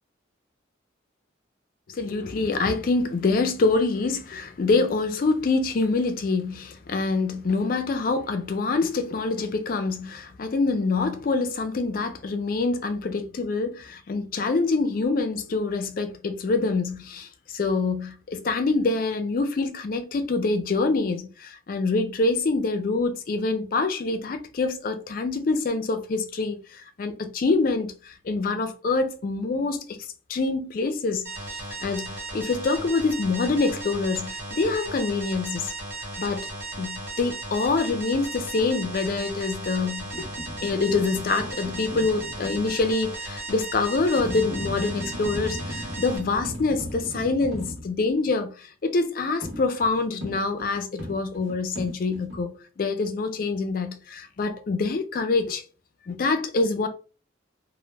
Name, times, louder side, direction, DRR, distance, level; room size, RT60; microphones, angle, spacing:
voice 1, 1.9-35.7 36.2-36.5 36.8-40.3 40.6-55.6 56.1-56.9, left 3 dB, 45° left, 0.3 m, -26 dB
sound 1, 31.2-46.2, right 2 dB, 55° right, 1.2 m, -36 dB
sound 2, 40.0-42.9 44.1-47.9 49.4-52.4, equal, 85° right, 0.8 m, -37 dB
2.1 x 2.0 x 3.2 m
head